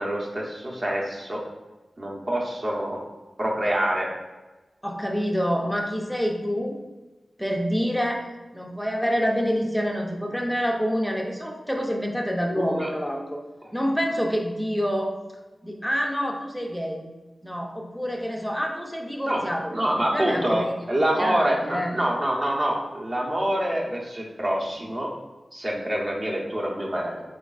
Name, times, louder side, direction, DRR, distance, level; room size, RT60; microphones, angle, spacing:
voice 1, 0.0-1.4 2.0-3.0 3.4-4.1 12.6-12.9 13.6-13.7 19.2-19.4 19.7-25.1 25.5-27.2, right 1 dB, 35° right, -2 dB, 0.7 m, -26 dB
voice 2, 4.8-6.8 7.4-8.3 8.5-13.4 13.7-15.2 15.6-17.1 17.4-19.7 20.1-20.7 21.2-21.9, equal, ahead, 1 dB, 0.4 m, -27 dB
4.0 x 3.4 x 2.3 m, 1.1 s
wide cardioid pair, 120°, 0 cm